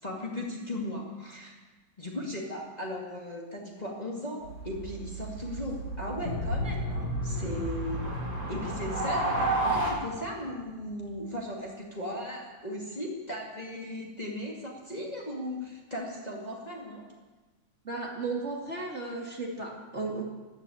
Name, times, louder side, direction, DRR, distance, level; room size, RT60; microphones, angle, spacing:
voice 1, 0.0-1.6 2.0-8.2 8.5-17.1, left 1 dB, 20° left, -2 dB, 2.3 m, -37 dB
sound 1, 4.4-9.9, right 2 dB, 55° right, 5.5 m, -33 dB
sound 2, 6.2-11.0, left 1 dB, 55° left, 1.8 m, -35 dB
voice 2, 17.8-20.2, right 3 dB, 35° right, -2 dB, 2.9 m, -34 dB
13.0 x 12.5 x 8.6 m, 1.2 s
omnidirectional pair, 2.1 m